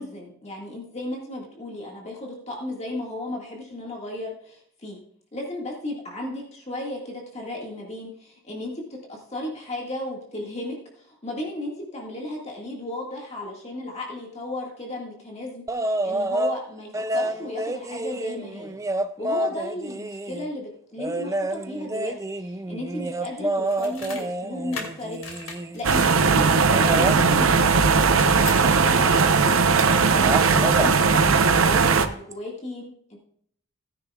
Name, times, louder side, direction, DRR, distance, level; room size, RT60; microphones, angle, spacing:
voice 1, 0.0-5.0 5.3-18.7 19.2-33.2, left 1 dB, 30° left, -1 dB, 1.9 m, -35 dB
sound 1, 15.7-16.6 16.9-20.5 21.0-25.8 26.7-27.2 29.0-29.2 29.5-29.9 30.2-30.9 32.3-32.4, right 1 dB, 15° right, 0.4 m, -28 dB
sound 2, 23.6-24.2 24.7-26.7 27.7-28.6, left 4 dB, 75° left, 2.2 m, -38 dB
sound 3, 25.8-32.1, right 5 dB, 80° right, 0.8 m, -18 dB
16.5 x 9.9 x 2.4 m, 0.63 s
head